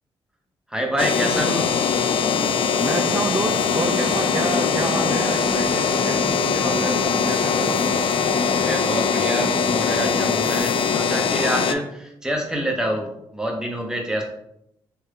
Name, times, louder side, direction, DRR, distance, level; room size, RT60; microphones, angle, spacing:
voice 1, 0.7-1.7 8.6-14.2, right 1 dB, 5° right, 0 dB, 1.1 m, -26 dB
sound 1, 1.0-11.7, left 6 dB, 60° left, 0.4 m, -22 dB
voice 2, 2.8-7.9, right 3 dB, 25° right, 4 dB, 0.4 m, -29 dB
sound 2, 3.7-5.1 5.4-7.5 7.7-9.7 10.0-10.6, equal, 60° right, 0.7 m, -32 dB
3.5 x 2.7 x 3.5 m, 0.76 s
supercardioid pair, 50°, 10 cm